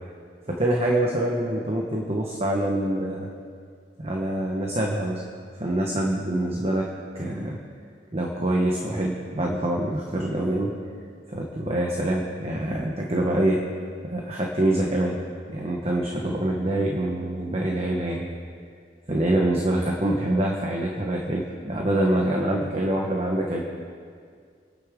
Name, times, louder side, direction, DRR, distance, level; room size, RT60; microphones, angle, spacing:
voice 1, 0.5-3.3 4.0-5.2 5.5-6.9 7.1-7.6 8.1-10.7 11.3-13.6 14.0-15.2 15.5-18.2 19.1-23.6, right 1 dB, 35° right, -1 dB, 1.3 m, -25 dB
26.5 x 9.7 x 3.8 m, 2.1 s
head